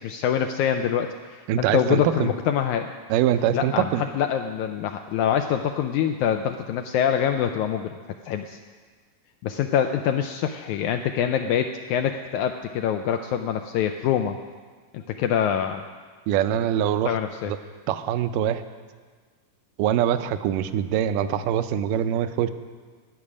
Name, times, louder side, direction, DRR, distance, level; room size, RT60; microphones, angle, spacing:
voice 1, 0.0-2.9 3.5-3.9 4.1-8.0 8.2-8.6 9.4-14.4 14.9-15.8 17.1-17.5, left 9 dB, 80° left, 6 dB, 1.8 m, -25 dB
voice 2, 1.5-2.3 3.1-4.0 16.3-17.2 17.5-17.6 17.9-18.6 19.8-22.5, right 10 dB, 80° right, 11 dB, 2.2 m, -23 dB
14.0 x 6.3 x 9.7 m, 1.5 s
omnidirectional pair, 3.9 m